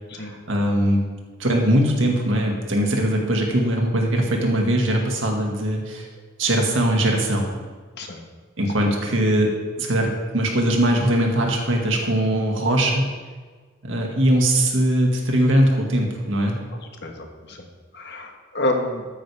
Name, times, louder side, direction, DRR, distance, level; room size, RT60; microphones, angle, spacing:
voice 1, 0.2-1.0 1.4-6.1 6.4-7.5 8.6-9.5 9.8-10.1 10.3-13.1 13.8-16.5, right 1 dB, 70° right, 0 dB, 2.1 m, -20 dB
voice 2, 17.0-17.6 17.9-19.1, left 1 dB, 55° left, 3 dB, 1.5 m, -28 dB
13.5 x 9.5 x 3.6 m, 1.4 s
head